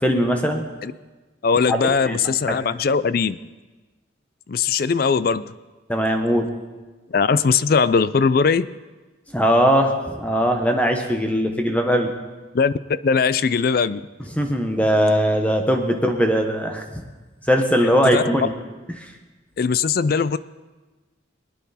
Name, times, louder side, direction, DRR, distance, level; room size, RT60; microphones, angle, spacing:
voice 1, 0.0-0.7 1.7-1.8 2.0-2.2 2.5-2.6 5.9-6.5 9.3-12.1 14.4-17.0 17.5-18.5 19.0-19.1, equal, 5° left, 4 dB, 1.2 m, -20 dB
voice 2, 1.4-3.4 4.5-5.5 7.1-8.7 12.5-12.7 13.0-14.0 18.0-18.2 19.6-20.4, left 5 dB, 50° left, 16 dB, 0.4 m, -20 dB
23.5 x 9.5 x 4.2 m, 1.3 s
head